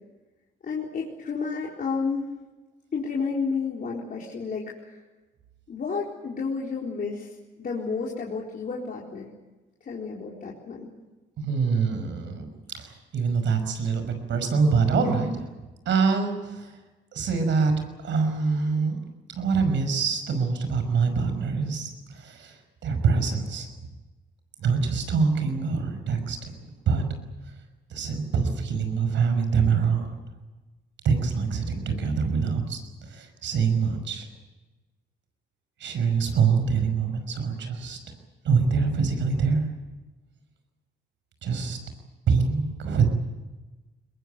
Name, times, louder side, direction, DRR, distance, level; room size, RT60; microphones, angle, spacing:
voice 1, 0.6-2.3 2.9-5.0 5.7-7.3 7.6-9.3 9.8-10.9, left 5 dB, 45° left, -4 dB, 4.3 m, -31 dB
voice 2, 11.4-12.5 12.7-15.3 15.9-16.7 17.1-17.7 18.0-19.0 19.3-23.7 24.6-26.5 26.9-27.0 27.9-30.1 31.0-34.3 35.8-38.0 38.4-39.6 41.4-41.8 42.3-43.1, right 5 dB, 70° right, 7 dB, 5.7 m, -25 dB
22.0 x 21.5 x 9.2 m, 1.2 s
cardioid pair, 90°, 20 cm